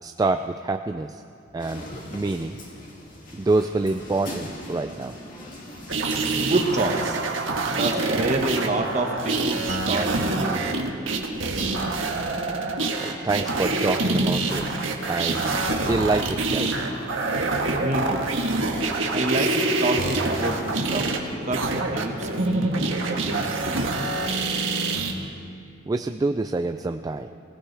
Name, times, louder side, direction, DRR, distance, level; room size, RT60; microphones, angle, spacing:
voice 1, 0.0-1.2 1.5-1.8 2.1-2.5 3.3-5.1 13.0-14.8 15.1-15.5 15.9-16.7 25.9-27.3, right 3 dB, 20° right, 7 dB, 0.3 m, -26 dB
sound 1, 1.6-6.8, left 1 dB, 40° left, 2.3 m, -40 dB
sound 2, 5.9-25.1, right 2 dB, 75° right, 1.5 m, -26 dB
voice 2, 6.4-7.2 7.6-10.7 17.8-18.3 19.1-19.5 19.8-22.7 23.2-23.8, right 2 dB, 35° right, 2 dB, 1.5 m, -28 dB
23.5 x 17.0 x 3.4 m, 2.6 s
head